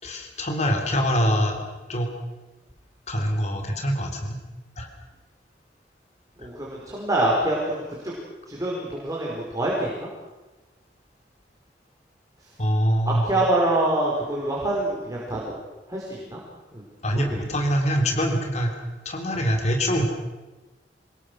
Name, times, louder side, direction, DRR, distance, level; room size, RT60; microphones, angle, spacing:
voice 1, 0.0-1.6 1.9-2.1 3.1-4.4 4.8-4.9 12.6-13.2 17.0-18.7 19.0-20.1, equal, 40° left, 3 dB, 3.3 m, -24 dB
voice 2, 6.4-8.1 8.5-10.1 13.0-15.5 15.9-16.4 16.7-16.8 17.1-17.4, right 1 dB, 20° right, -4 dB, 4.9 m, -25 dB
25.5 x 21.0 x 6.3 m, 1.2 s
head